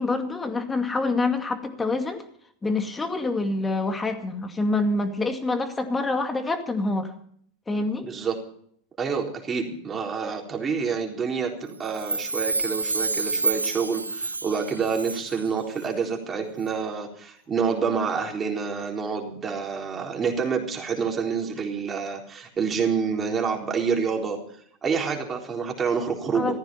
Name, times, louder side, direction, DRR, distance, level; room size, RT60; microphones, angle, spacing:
voice 1, 0.0-2.2 2.6-7.1 7.7-8.1 26.3-26.6, left 3 dB, 15° left, 7 dB, 2.3 m, -26 dB
voice 2, 8.0-8.4 9.0-24.4 24.8-26.6, right 5 dB, 25° right, 1 dB, 3.9 m, -27 dB
Chime, 11.8-15.5 15.8-15.9, right 3 dB, 90° right, 0.8 m, -29 dB
15.0 x 14.5 x 5.6 m, 0.63 s
figure-of-eight pair, 85°, 0 cm